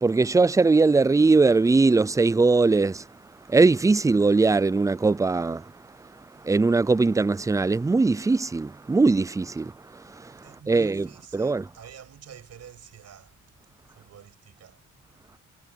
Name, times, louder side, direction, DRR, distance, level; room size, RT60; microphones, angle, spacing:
voice 1, 0.0-3.0 3.5-5.6 6.4-9.7 10.7-11.1 11.3-11.6, right 3 dB, 10° right, 0.5 m, -20 dB
voice 2, 10.4-13.4 13.9-14.8, right 9 dB, 60° right, 7.3 m, -48 dB
cardioid pair, 90°, 30 cm